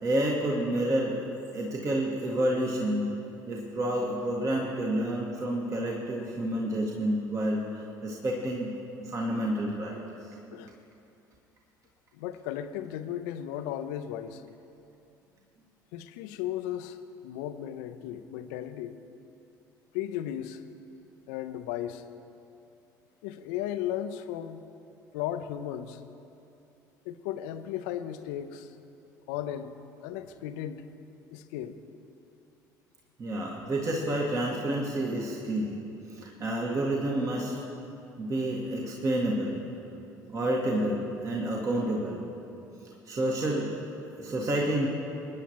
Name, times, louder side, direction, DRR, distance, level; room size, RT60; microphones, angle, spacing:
voice 1, 0.0-1.2 1.5-3.1 3.5-8.7 9.0-10.0 33.2-35.7 36.1-37.5 38.2-39.6 40.3-42.2 43.1-43.7 44.1-44.9, right 1 dB, 35° right, -2 dB, 1.7 m, -29 dB
voice 2, 12.1-14.4 15.9-19.0 19.9-20.6 21.3-22.0 23.2-24.6 25.1-26.0 27.0-28.7 29.3-29.7 30.0-30.8 31.3-31.8, left 11 dB, 60° left, 10 dB, 0.6 m, -35 dB
25.5 x 10.0 x 3.0 m, 2.7 s
figure-of-eight pair, 60°, 10 cm